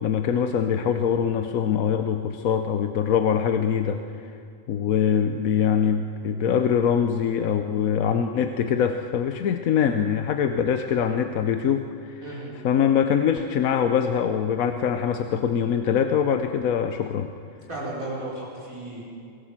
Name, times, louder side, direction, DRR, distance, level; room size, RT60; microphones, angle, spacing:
voice 1, 0.0-4.3 4.7-12.2 12.6-17.3, left 8 dB, 85° left, 7 dB, 1.2 m, -23 dB
voice 2, 12.2-12.5 17.7-19.0, right 1 dB, 85° right, -5 dB, 5.6 m, -34 dB
25.0 x 16.5 x 7.4 m, 2.4 s
omnidirectional pair, 1.4 m